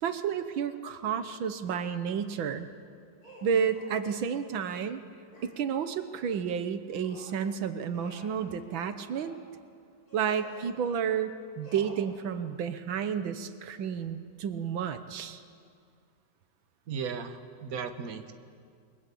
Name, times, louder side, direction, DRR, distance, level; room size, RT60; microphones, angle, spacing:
voice 1, 0.0-2.7 3.4-5.0 5.4-9.4 10.1-15.4, right 7 dB, 85° right, 10 dB, 1.9 m, -31 dB
sound 1, 1.6-1.9 3.2-4.4 5.3-5.6 6.9-7.4 7.9-8.4 9.0-9.4 10.1-10.7 11.6-12.0, equal, 50° left, 7.5 m, -51 dB
voice 2, 16.9-18.3, right 6 dB, 50° right, 8 dB, 1.7 m, -36 dB
29.5 x 22.5 x 8.5 m, 2.3 s
omnidirectional pair, 2.1 m